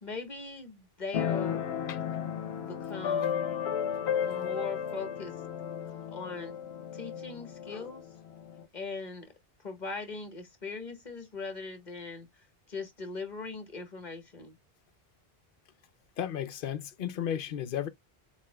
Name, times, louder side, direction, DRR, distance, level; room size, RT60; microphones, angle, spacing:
voice 1, 0.0-1.6 2.6-3.4 4.2-5.3 6.1-6.6 6.9-8.0 8.7-9.3 9.6-12.3 12.7-14.5, left 4 dB, 45° left, 1.5 m, -40 dB
Keyboard (musical), 1.1-8.6, left 8 dB, 85° left, 1.0 m, -34 dB
voice 2, 16.2-17.9, left 9 dB, 60° left, 0.8 m, -34 dB
7.1 x 3.0 x 2.2 m
omnidirectional pair, 1.0 m